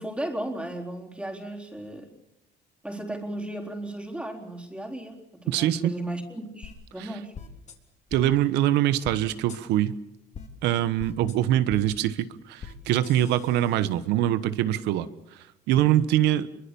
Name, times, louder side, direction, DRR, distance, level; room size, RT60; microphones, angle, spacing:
voice 1, 0.0-2.2 2.8-7.3, right 1 dB, 5° right, 1 dB, 3.9 m, -35 dB
voice 2, 5.5-5.9 8.1-9.9 10.6-15.1 15.7-16.5, right 12 dB, 90° right, 14 dB, 1.2 m, -23 dB
sound 1, 6.6-6.7 7.3-7.7 8.1-8.2 9.0-9.2 9.5-9.6 10.3-10.5 11.0-11.3 11.7-11.8 12.6-12.7 13.0-14.0, left 6 dB, 45° left, 3.5 m, -41 dB
26.0 x 23.5 x 7.1 m, 0.86 s
cardioid pair, 110°, 17 cm